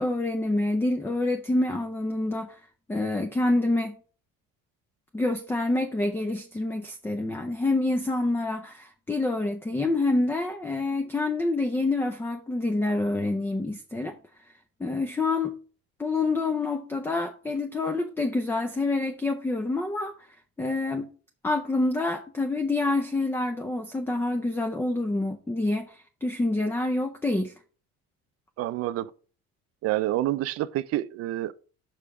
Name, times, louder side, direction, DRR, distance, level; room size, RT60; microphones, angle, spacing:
voice 1, 0.0-2.6 2.9-3.9 5.1-14.2 14.8-15.6 16.0-20.1 20.6-21.1 21.4-27.5, left 2 dB, 10° left, 0.5 m, -27 dB
voice 2, 28.6-29.1 29.8-31.5, right 15 dB, 55° right, 0.5 m, -28 dB
5.9 x 4.9 x 4.9 m
cardioid pair, 140°, 30 cm